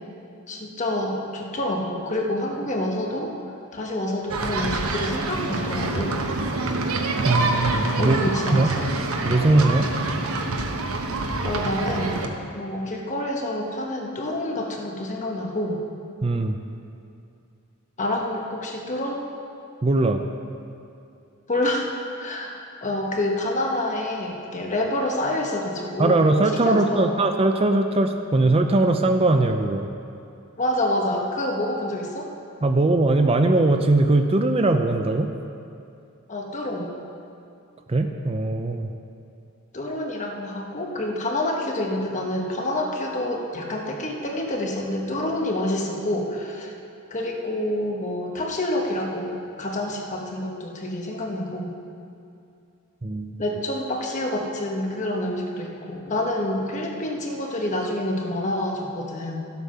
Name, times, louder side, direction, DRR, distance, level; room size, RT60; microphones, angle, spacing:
voice 1, 0.5-3.3 3.7-6.2 8.0-8.9 11.4-12.2 12.5-15.8 18.0-19.2 21.5-21.9 22.2-26.2 26.5-27.2 30.6-32.3 36.3-36.9 39.7-46.7 47.1-51.7 53.4-59.5, left 1 dB, 35° left, 0 dB, 1.2 m, -27 dB
sound 1, 4.3-12.3, right 2 dB, 75° right, 1.0 m, -26 dB
voice 2, 7.2-8.2 8.5-8.7 9.2-9.9 16.2-16.6 19.8-20.2 26.0-29.9 32.6-35.3 37.9-38.9 53.0-53.4, right 2 dB, 25° right, 6 dB, 0.5 m, -20 dB
13.0 x 8.2 x 5.6 m, 2.5 s
head